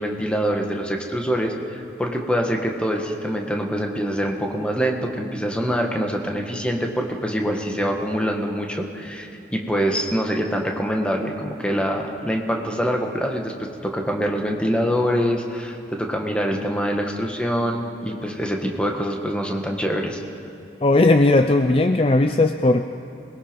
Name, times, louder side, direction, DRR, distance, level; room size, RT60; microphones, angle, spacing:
voice 1, 0.0-20.2, equal, 5° left, 2 dB, 1.6 m, -25 dB
voice 2, 20.8-22.9, left 2 dB, 30° left, 7 dB, 0.5 m, -17 dB
27.0 x 20.5 x 5.3 m, 2.9 s
head